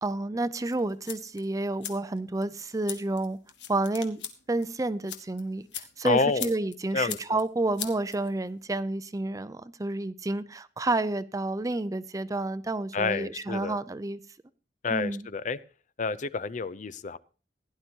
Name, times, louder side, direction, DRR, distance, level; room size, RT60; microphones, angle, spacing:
voice 1, 0.0-3.4 3.7-4.2 4.5-14.2 14.9-15.3, right 2 dB, 20° right, 0.5 m, -30 dB
sound 1, 0.7-8.7, left 10 dB, 85° left, 1.5 m, -42 dB
voice 2, 6.0-6.5 6.9-7.4 12.9-13.8 14.8-15.6 16.0-17.2, left 4 dB, 45° left, 0.5 m, -29 dB
16.0 x 11.0 x 2.8 m
head